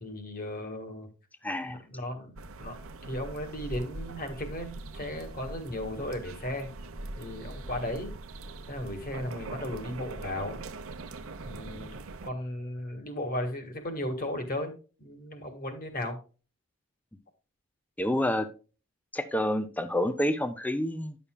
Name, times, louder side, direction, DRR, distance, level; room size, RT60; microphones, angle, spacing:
voice 1, 0.0-1.1 1.6-2.3 2.6-2.8 3.0-6.7 7.2-8.1 8.7-10.6 11.4-14.7 15.0-16.2, left 1 dB, 40° left, 6 dB, 1.6 m, -35 dB
voice 2, 1.4-1.8 18.0-18.5 19.1-21.2, left 1 dB, 5° left, 11 dB, 0.5 m, -28 dB
sound 1, 2.4-12.3, right 2 dB, 65° right, 0.7 m, -42 dB
10.0 x 6.9 x 2.2 m, 0.35 s
head